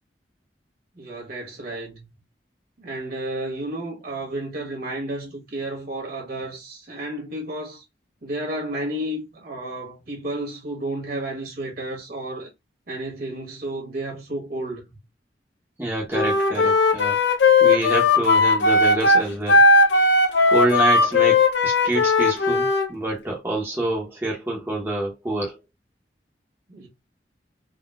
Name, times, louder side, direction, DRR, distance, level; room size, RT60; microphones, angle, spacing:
voice 1, 0.9-2.1 2.8-7.8 8.2-12.5 12.9-15.0 26.7-26.9, right 1 dB, 60° right, 1.4 m, -32 dB
voice 2, 15.8-19.6 20.5-25.6, right 2 dB, 15° right, 0.8 m, -27 dB
Wind instrument woodwind instrument, 16.1-22.9, left 3 dB, 75° left, 0.6 m, -17 dB
3.7 x 2.2 x 2.2 m
head